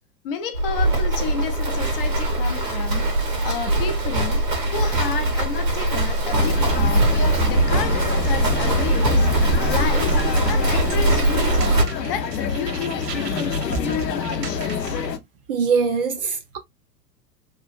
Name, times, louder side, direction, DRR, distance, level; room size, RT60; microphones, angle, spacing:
voice 1, 0.2-4.4 4.7-7.1 7.5-9.3 9.7-15.0, left 7 dB, 35° left, 0.5 m, -31 dB
Livestock farm animals working animals, 0.5-11.8, right 1 dB, 90° right, 1.4 m, -21 dB
sound 1, 6.3-15.2, left 5 dB, 80° left, 0.7 m, -27 dB
sound 2, 9.5-15.1, right 4 dB, 75° right, 0.8 m, -35 dB
voice 2, 15.5-16.6, right 5 dB, 40° right, 0.4 m, -22 dB
3.0 x 2.4 x 2.3 m
figure-of-eight pair, 100°, 49 cm